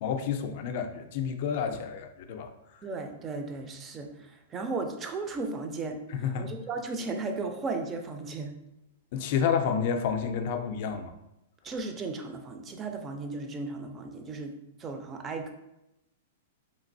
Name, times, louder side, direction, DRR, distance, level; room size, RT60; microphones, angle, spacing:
voice 1, 0.0-2.5 6.1-6.5 9.1-11.1, left 7 dB, 50° left, 7 dB, 0.4 m, -29 dB
voice 2, 2.8-6.0 6.4-8.5 11.6-14.5 14.8-15.5, right 3 dB, 20° right, 5 dB, 0.4 m, -35 dB
3.0 x 2.6 x 2.6 m, 0.88 s
hypercardioid pair, 145°, 0 cm